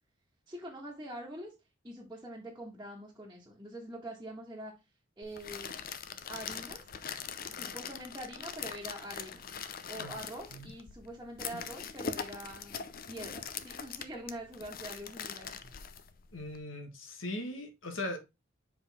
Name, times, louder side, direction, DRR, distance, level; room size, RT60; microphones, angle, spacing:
voice 1, 0.5-1.5 1.8-4.7 5.2-5.8 6.3-6.8 7.5-9.5 9.9-15.5, right 1 dB, 15° right, 1.6 m, -44 dB
sound 1, 5.2-16.6, left 7 dB, 45° left, 0.6 m, -42 dB
voice 2, 16.3-18.2, left 1 dB, 80° left, 1.5 m, -39 dB
6.5 x 5.0 x 3.5 m
head